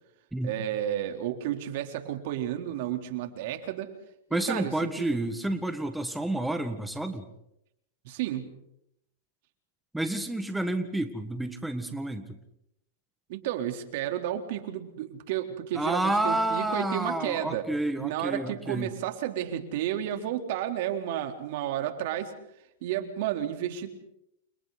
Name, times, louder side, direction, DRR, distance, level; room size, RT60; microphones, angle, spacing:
voice 1, 0.4-3.9 4.4-5.2 8.0-8.5 13.3-17.7 18.0-22.3 22.8-23.9, right 11 dB, 60° right, 5 dB, 3.7 m, -32 dB
voice 2, 4.3-7.3 9.9-12.4 15.7-18.9, right 1 dB, 5° right, 7 dB, 1.8 m, -30 dB
30.0 x 29.5 x 4.2 m, 0.78 s
hypercardioid pair, 120°, 0 cm